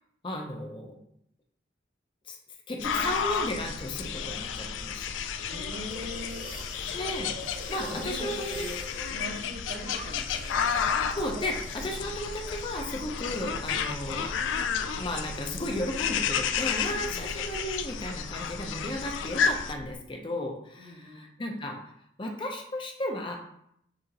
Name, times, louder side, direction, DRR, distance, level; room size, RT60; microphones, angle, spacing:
voice 1, 0.2-1.0 2.3-2.4 2.7-5.1 6.9-7.3 7.7-8.6 11.1-14.3 15.0-21.8 22.2-23.4, left 1 dB, 25° left, 2 dB, 0.6 m, -34 dB
sound 1, 2.8-19.7, left 7 dB, 90° left, 0.3 m, -32 dB
sound 2, 2.8-20.0, equal, 60° left, 0.9 m, -43 dB
voice 2, 5.4-6.6 7.9-8.8 9.1-10.7 17.1-17.3 20.8-21.3, left 1 dB, 55° right, -1 dB, 1.1 m, -42 dB
sound 3, 5.9-13.3 13.6-15.1, right 2 dB, 30° right, 0.5 m, -45 dB
6.6 x 2.5 x 2.9 m, 0.72 s
head